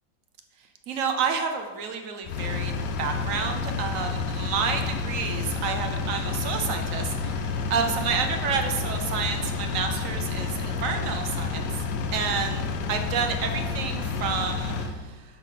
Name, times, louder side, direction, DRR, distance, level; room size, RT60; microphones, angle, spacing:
voice 1, 0.9-2.7 3.0-11.8 12.1-15.2, right 6 dB, 55° right, 5 dB, 1.1 m, -30 dB
Engine, 2.2-14.9, left 4 dB, 70° left, 1.2 m, -30 dB
10.0 x 3.7 x 6.6 m, 1.4 s
omnidirectional pair, 2.0 m